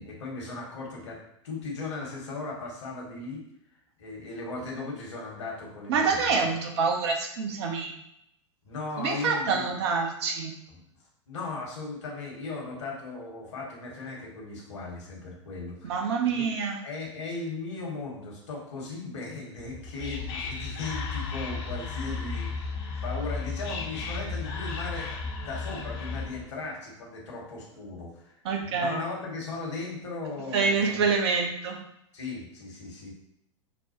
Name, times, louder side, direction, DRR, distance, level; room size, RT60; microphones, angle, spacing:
voice 1, 0.0-3.4 4.0-6.5 8.6-9.7 10.7-10.8 11.3-16.5 16.8-31.2 32.1-33.1, left 3 dB, 65° left, -2 dB, 1.3 m, -37 dB
voice 2, 5.9-7.9 9.0-10.5 15.8-16.8 28.4-29.0 30.5-31.8, right 5 dB, 55° right, 2 dB, 0.8 m, -26 dB
Whispering, 19.6-26.5, left 4 dB, 45° left, 0.8 m, -34 dB
5.3 x 2.2 x 2.9 m, 0.77 s
figure-of-eight pair, 95°, 16 cm